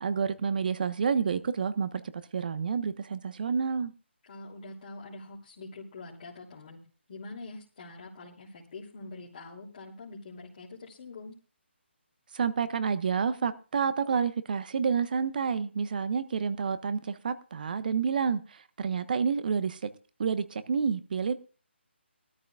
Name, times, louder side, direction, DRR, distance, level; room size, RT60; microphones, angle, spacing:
voice 1, 0.0-2.0 2.3-3.9 12.3-19.9 20.2-21.3, right 6 dB, 45° right, 1.2 m, -29 dB
voice 2, 4.2-6.8 7.1-11.4, left 3 dB, 45° left, 3.0 m, -45 dB
20.0 x 13.0 x 2.4 m
figure-of-eight pair, 150°, 6 cm